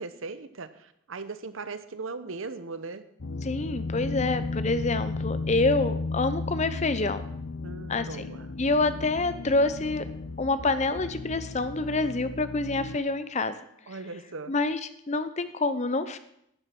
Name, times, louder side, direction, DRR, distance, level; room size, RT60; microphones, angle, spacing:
voice 1, 0.0-3.0 7.6-8.5 13.9-14.5, right 3 dB, 70° right, 12 dB, 0.9 m, -38 dB
sound 1, 3.2-13.0, left 3 dB, 70° left, 0.8 m, -34 dB
voice 2, 3.4-7.2 7.9-8.1 8.6-10.0 10.4-13.5 14.5-16.2, left 3 dB, 35° left, 12 dB, 0.6 m, -27 dB
11.5 x 10.0 x 6.0 m, 0.76 s
head